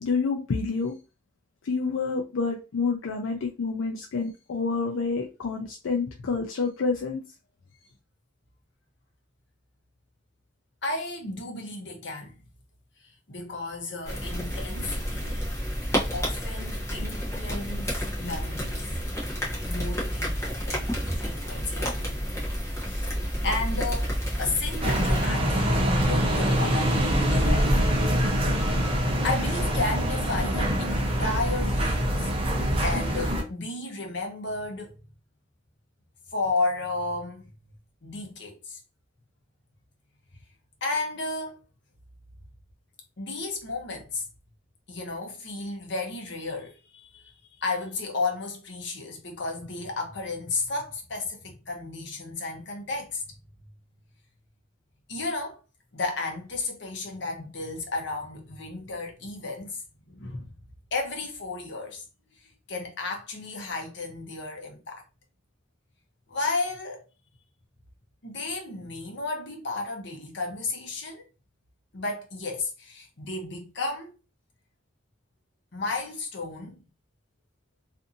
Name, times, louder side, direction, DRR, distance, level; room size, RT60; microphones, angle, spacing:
voice 1, 0.0-1.0 1.6-7.2, left 4 dB, 85° left, 0.4 m, -28 dB
voice 2, 10.8-12.4 13.0-15.5 16.1-18.8 19.6-22.2 22.8-28.3 29.2-32.3 32.8-35.0 36.3-37.5 38.0-38.8 40.8-41.6 43.2-44.3 44.9-53.4 55.1-55.6 55.9-60.5 60.9-62.0 62.4-65.0 66.3-67.0 68.2-71.3 71.9-74.1 75.7-76.8, left 3 dB, 60° left, 0.8 m, -33 dB
sound 1, 14.0-25.3, equal, 15° left, 0.8 m, -30 dB
sound 2, 24.8-33.4, equal, 30° right, 0.6 m, -24 dB
2.6 x 2.5 x 2.5 m
head